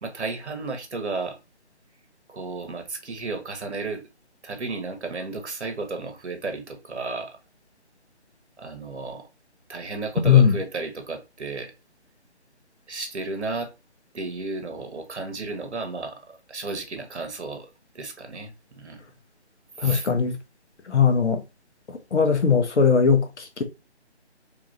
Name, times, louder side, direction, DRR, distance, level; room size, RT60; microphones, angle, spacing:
voice 1, 0.0-1.4 2.3-4.0 4.4-7.4 8.6-9.3 9.7-11.7 12.9-13.7 14.1-16.2 16.5-17.7 17.9-19.0 19.8-20.1, right 3 dB, 80° right, 1.1 m, -33 dB
voice 2, 10.2-10.6 19.8-20.4 20.9-21.4 21.9-23.6, left 6 dB, 80° left, 0.9 m, -19 dB
3.4 x 3.0 x 2.6 m
figure-of-eight pair, 160°, 34 cm